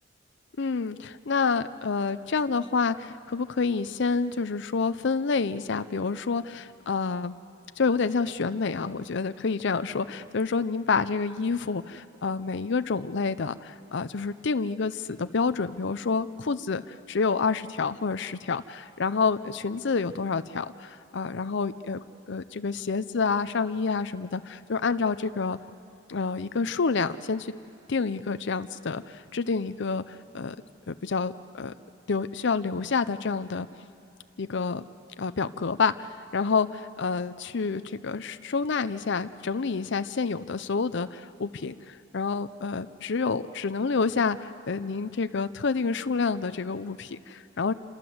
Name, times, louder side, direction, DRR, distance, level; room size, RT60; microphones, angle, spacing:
voice 1, 0.6-7.3 7.8-25.6 26.1-27.5 27.9-30.6 30.9-31.7 32.1-33.7 34.4-34.8 35.2-47.7, left 4 dB, 65° left, 12 dB, 0.6 m, -28 dB
28.0 x 27.0 x 7.9 m, 2.6 s
head